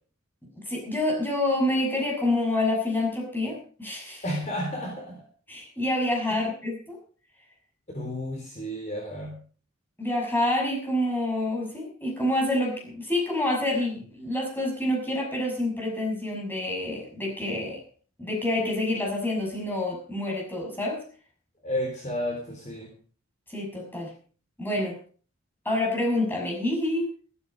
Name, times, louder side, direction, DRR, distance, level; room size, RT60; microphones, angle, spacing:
voice 1, 0.6-4.2 5.5-7.0 10.0-17.8 18.2-21.0 23.5-24.1 24.6-25.0 25.6-27.1, left 1 dB, 10° left, -1 dB, 6.2 m, -27 dB
voice 2, 4.2-5.2 6.3-6.4 7.9-9.4 21.6-22.9, equal, 35° left, 1 dB, 3.8 m, -32 dB
14.5 x 13.5 x 5.3 m, 0.42 s
head